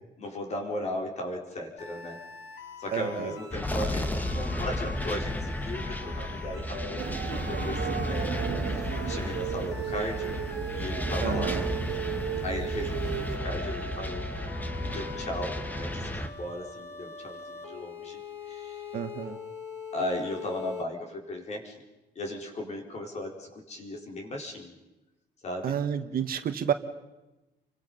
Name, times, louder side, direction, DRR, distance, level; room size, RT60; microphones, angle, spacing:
voice 1, 0.2-2.2 2.8-10.3 10.7-11.6 12.4-14.3 14.8-19.0 19.9-21.8 22.1-24.7 25.4-25.7, left 1 dB, 40° left, 2 dB, 4.7 m, -37 dB
sound 1, 1.8-20.8, left 3 dB, 75° left, 3.1 m, -43 dB
voice 2, 2.9-3.3 11.2-11.6 18.9-19.4 25.6-26.7, right 9 dB, 55° right, 9 dB, 1.5 m, -30 dB
sound 2, 3.5-16.3, left 1 dB, 10° left, 1.5 m, -33 dB
sound 3, 7.0-13.4, right 9 dB, 80° right, 2.0 m, -34 dB
30.0 x 25.0 x 5.6 m, 1.0 s
cardioid pair, 145°, 18 cm